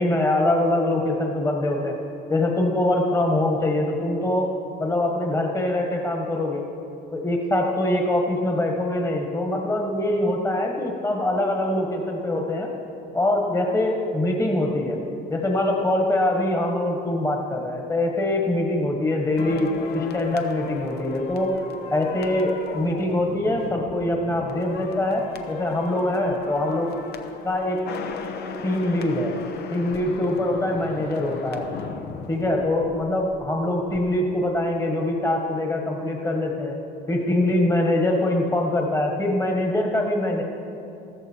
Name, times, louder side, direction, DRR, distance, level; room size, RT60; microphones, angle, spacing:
voice 1, 0.0-2.0 2.3-4.5 4.8-6.6 7.1-12.7 13.1-15.0 15.3-21.5 21.9-26.9 27.4-27.8 28.6-29.3 29.7-31.7 32.3-36.8 37.1-40.4, left 1 dB, 20° left, 1 dB, 1.5 m, -23 dB
sound 1, 19.4-33.5 33.8-34.0, left 6 dB, 75° left, 1.0 m, -37 dB
14.5 x 14.0 x 4.5 m, 2.8 s
cardioid pair, 110°, 17 cm